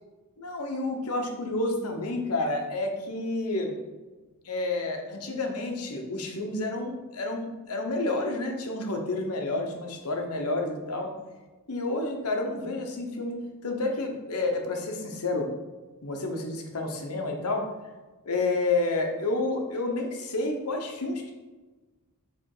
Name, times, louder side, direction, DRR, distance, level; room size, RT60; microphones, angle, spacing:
voice 1, 0.4-3.8 4.4-11.1 11.7-13.4 13.6-15.5 16.0-17.7 18.2-21.4, left 2 dB, 85° left, 3 dB, 1.1 m, -30 dB
6.8 x 3.3 x 4.9 m, 1.2 s
head